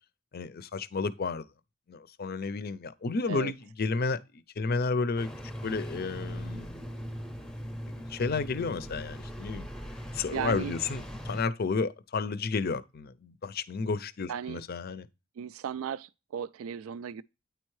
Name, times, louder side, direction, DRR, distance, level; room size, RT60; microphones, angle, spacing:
voice 1, 0.3-1.5 1.9-4.2 4.6-5.3 5.6-6.8 8.1-9.7 10.1-15.1, left 4 dB, 50° left, 0.5 m, -31 dB
Engine starting, 5.2-11.4, equal, 5° left, 0.6 m, -39 dB
voice 2, 10.3-10.7 14.3-14.6 15.4-17.2, right 8 dB, 75° right, 0.3 m, -36 dB
9.2 x 4.4 x 3.1 m
head